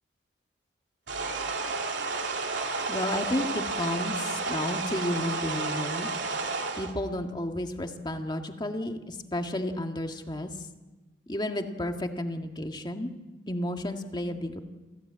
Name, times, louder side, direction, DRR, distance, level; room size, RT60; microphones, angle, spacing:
sound 1, 1.1-6.9, right 3 dB, 85° right, 2.7 m, -31 dB
voice 1, 2.9-6.1 6.8-10.5 11.3-13.1 13.5-14.6, left 1 dB, 25° left, 4 dB, 1.8 m, -32 dB
28.0 x 16.0 x 8.6 m, 1.2 s
head